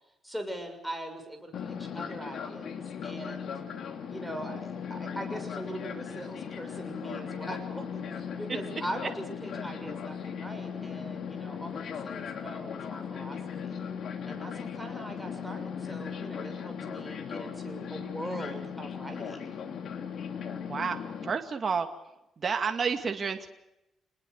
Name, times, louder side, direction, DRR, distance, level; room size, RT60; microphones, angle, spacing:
voice 1, 0.2-3.5 4.1-13.8 14.2-19.4, right 1 dB, ahead, 7 dB, 6.6 m, -41 dB
Fixed-wing aircraft airplane, 1.5-21.3, left 7 dB, 65° left, 3.2 m, -38 dB
voice 2, 20.5-21.0 21.2-21.9 22.4-23.5, right 5 dB, 40° right, 5 dB, 2.3 m, -30 dB
27.0 x 20.5 x 6.6 m, 0.89 s
cardioid pair, 105°, 0 cm